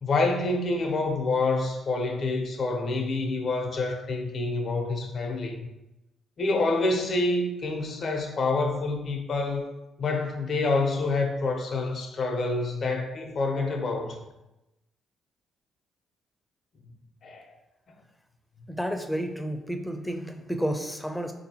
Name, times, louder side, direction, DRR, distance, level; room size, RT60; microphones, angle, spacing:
voice 1, 0.0-5.6 6.4-9.7 10.0-14.2 17.2-17.5, left 3 dB, 55° left, 3 dB, 0.6 m, -27 dB
voice 2, 18.7-21.3, equal, 5° left, 5 dB, 0.5 m, -31 dB
3.9 x 2.7 x 2.8 m, 0.95 s
supercardioid pair, 55°, 0 cm